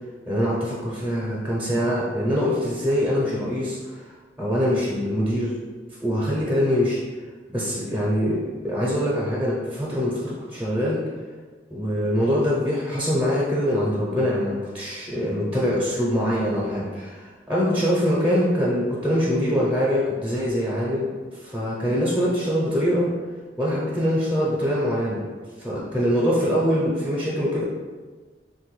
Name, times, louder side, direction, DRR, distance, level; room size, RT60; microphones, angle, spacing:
voice 1, 0.3-4.1 4.4-5.5 6.0-7.0 7.5-11.0 11.7-23.1 23.6-25.2 25.6-27.6, equal, 10° right, -6 dB, 0.5 m, -23 dB
3.4 x 2.2 x 3.0 m, 1.4 s
head